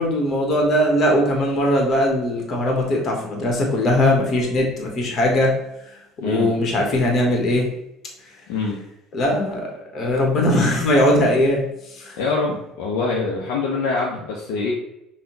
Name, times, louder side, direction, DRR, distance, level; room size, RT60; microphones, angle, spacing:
voice 1, 0.0-5.6 6.2-7.7 9.1-12.2, left 1 dB, 40° left, 0 dB, 1.4 m, -20 dB
voice 2, 6.2-6.6 8.5-8.8 12.2-14.7, left 3 dB, 65° left, -3 dB, 0.7 m, -24 dB
5.6 x 2.4 x 3.8 m, 0.83 s
figure-of-eight pair, 60°, 0 cm